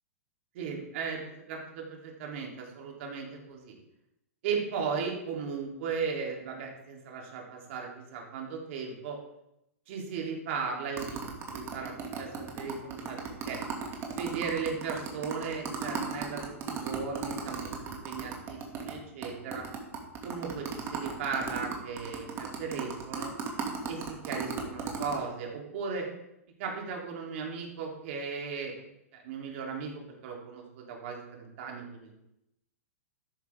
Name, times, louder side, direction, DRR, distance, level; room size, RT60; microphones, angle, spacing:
voice 1, 0.5-1.2 1.5-3.7 4.4-9.2 9.9-13.6 14.1-19.6 20.2-23.3 23.9-26.1 26.6-28.7 29.2-32.3, right 5 dB, 55° right, 0 dB, 3.5 m, -36 dB
sound 1, 11.0-18.9 19.2-19.3 19.5-25.2, right 7 dB, 30° right, 2.6 m, -36 dB
13.0 x 10.5 x 3.8 m, 0.84 s
hypercardioid pair, 105°, 8 cm